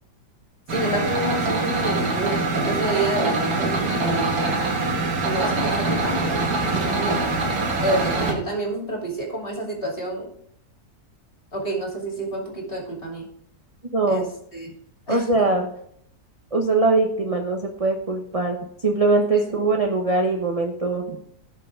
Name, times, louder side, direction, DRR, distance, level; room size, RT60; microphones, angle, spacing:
voice 1, 0.7-4.4 5.2-7.4 7.8-10.3 11.5-13.3 14.1-14.3 14.5-14.7 15.1-15.5 19.3-19.6, right 1 dB, 35° left, -1 dB, 2.9 m, -29 dB
sound 1, 0.7-8.3, right 3 dB, 70° right, 2.3 m, -24 dB
voice 2, 13.9-14.2 15.1-15.7 16.5-18.6 18.8-21.2, right 3 dB, 25° right, 2 dB, 0.9 m, -21 dB
17.0 x 5.7 x 3.7 m, 0.68 s
omnidirectional pair, 1.7 m